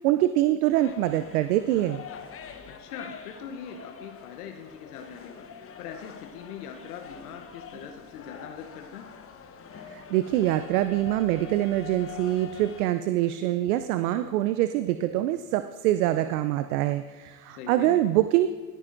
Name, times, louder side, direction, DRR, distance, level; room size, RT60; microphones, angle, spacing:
voice 1, 0.0-2.0 9.9-18.5, right 14 dB, 75° right, 11 dB, 0.6 m, -24 dB
sound 1, 0.8-12.9, left 7 dB, 30° left, 1.0 m, -45 dB
voice 2, 2.7-5.5 5.8-9.1 17.5-18.0, left 7 dB, 75° left, 4 dB, 0.9 m, -42 dB
17.0 x 10.0 x 2.6 m, 1.4 s
hypercardioid pair, 80°, 45 cm